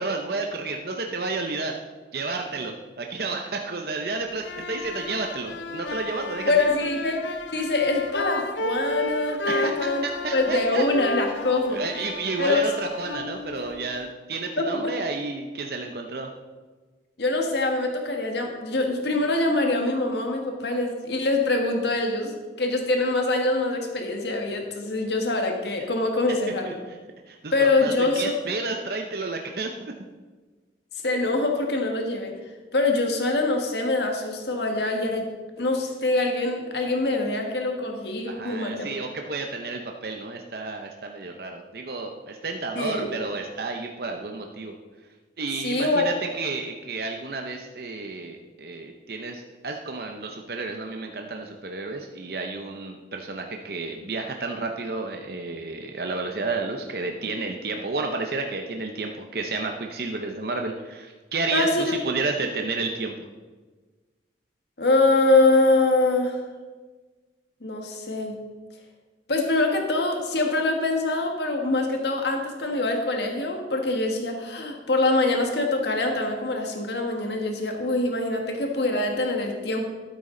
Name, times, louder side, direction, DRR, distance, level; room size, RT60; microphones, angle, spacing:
voice 1, 0.0-1.8 2.1-6.7 9.5-10.8 11.7-16.3 26.6-27.0 27.3-29.9 38.3-44.8 45.4-63.3, right 3 dB, 55° right, 3 dB, 0.7 m, -31 dB
sound 1, 4.3-14.1, left 2 dB, 85° left, 0.6 m, -33 dB
voice 2, 6.5-7.2 7.5-10.0 10.3-11.8 12.4-12.7 14.6-14.9 17.2-26.8 27.5-28.3 31.0-32.3 32.7-35.3 35.6-39.0 42.7-43.1 45.6-46.1 61.5-62.0 64.8-66.4 67.6-68.4 69.3-79.9, left 2 dB, 70° left, 3 dB, 1.5 m, -24 dB
13.0 x 8.3 x 3.8 m, 1.3 s
head